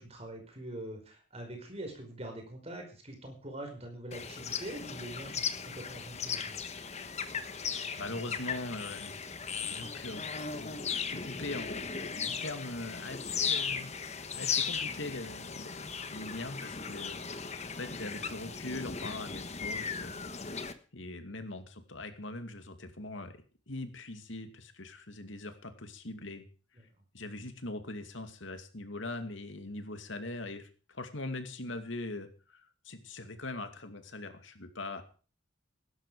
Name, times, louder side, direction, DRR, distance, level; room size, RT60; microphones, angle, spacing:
voice 1, 0.0-6.6 26.7-26.8, right 1 dB, 30° right, 4 dB, 5.1 m, -44 dB
sound 1, 4.1-20.7, left 6 dB, 35° left, 1.3 m, -37 dB
voice 2, 8.0-9.1 9.7-10.8 11.1-17.2 17.8-20.2 20.9-23.3 23.7-26.4 27.1-35.0, left 2 dB, 75° left, 8 dB, 2.4 m, -41 dB
16.5 x 13.0 x 4.9 m, 0.37 s
head